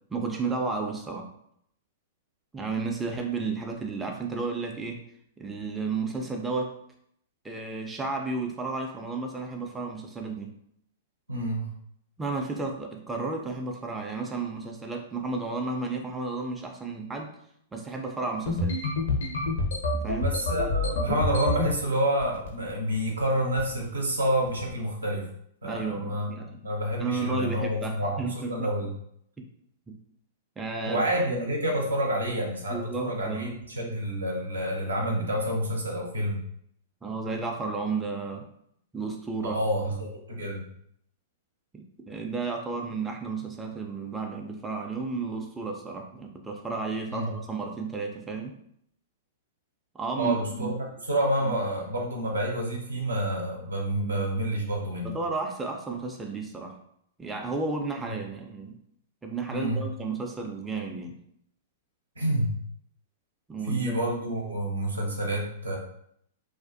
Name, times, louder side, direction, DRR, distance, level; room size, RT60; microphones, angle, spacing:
voice 1, 0.1-1.3 2.5-5.0 5.4-6.8 7.4-10.5 12.2-17.3 17.7-18.8 19.9-20.3 25.6-26.6 27.0-28.7 29.4-29.5 29.9-30.0 30.6-31.0 32.7-33.6 37.0-38.5 38.9-39.6 41.7-48.5 49.9-50.8 51.4-51.5 55.0-56.8 57.2-58.8 59.2-61.2 63.5-63.9, right 4 dB, 10° right, 1 dB, 0.3 m, -32 dB
voice 2, 11.3-11.7 20.2-25.3 25.6-26.3 26.6-28.9 30.9-36.4 39.4-40.6 47.1-47.3 50.2-55.1 59.5-59.8 62.2-62.5 63.6-65.8, right 1 dB, 80° right, 0 dB, 0.6 m, -28 dB
sound 1, 18.5-21.7 22.2-22.7 23.0-23.2 23.6-23.9 24.5-24.7, left 2 dB, 70° left, 0.5 m, -28 dB
2.4 x 2.1 x 2.5 m, 0.71 s
figure-of-eight pair, 105°, 0 cm